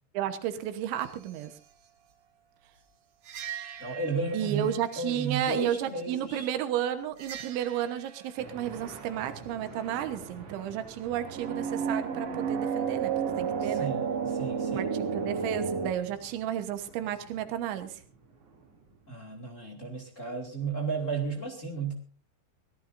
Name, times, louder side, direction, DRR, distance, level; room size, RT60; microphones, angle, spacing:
voice 1, 0.2-1.5 4.3-13.1 13.4-13.9 14.7-18.0, right 11 dB, 90° right, 9 dB, 3.6 m, -32 dB
sound 1, 3.3-4.7 7.2-7.9 11.1-15.9, right 6 dB, 60° right, 1.7 m, -32 dB
voice 2, 3.8-6.5 13.6-14.9 19.1-21.9, right 4 dB, 30° left, 1 dB, 1.5 m, -34 dB
sound 2, 8.4-19.1, right 4 dB, 40° right, 3.5 m, -49 dB
23.5 x 17.5 x 2.6 m, 0.42 s
omnidirectional pair, 5.2 m